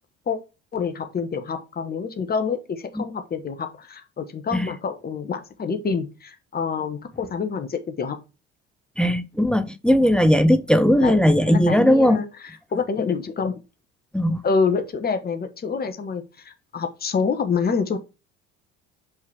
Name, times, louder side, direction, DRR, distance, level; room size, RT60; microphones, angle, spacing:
voice 1, 0.7-8.2 11.0-11.2 11.4-12.3 12.7-13.6 14.4-18.0, left 5 dB, 25° left, 1.3 m, -26 dB
voice 2, 9.0-12.2 14.1-14.4, equal, ahead, 0.5 m, -18 dB
5.5 x 5.0 x 4.7 m
figure-of-eight pair, 60°, 37 cm